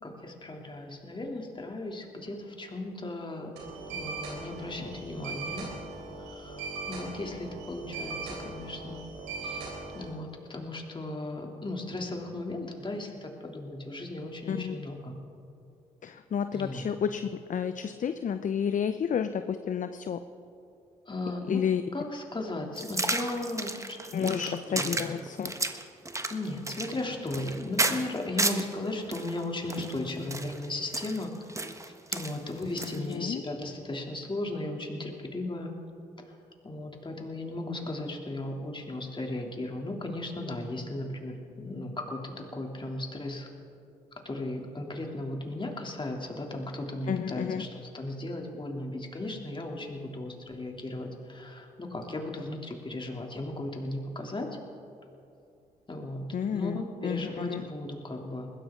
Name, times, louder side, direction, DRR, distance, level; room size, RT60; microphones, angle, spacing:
voice 1, 0.0-3.5 3.9-5.7 6.2-9.0 9.4-9.6 9.9-15.2 16.5-16.9 21.1-25.2 26.3-31.3 32.1-35.7 36.6-43.5 44.2-54.5 55.9-58.5, left 2 dB, 30° left, 1 dB, 2.9 m, -36 dB
sound 1, 3.6-10.1, right 3 dB, 85° right, 3.7 m, -39 dB
voice 2, 14.5-14.8 16.0-20.2 21.5-21.8 24.1-25.5 33.0-33.4 47.1-47.6 56.3-57.6, left 7 dB, 50° left, 10 dB, 0.6 m, -31 dB
sound 2, 22.8-28.7 29.1-33.1, right 2 dB, 20° right, 1.4 m, -32 dB
21.0 x 15.0 x 3.8 m, 2.6 s
hypercardioid pair, 45°, 17 cm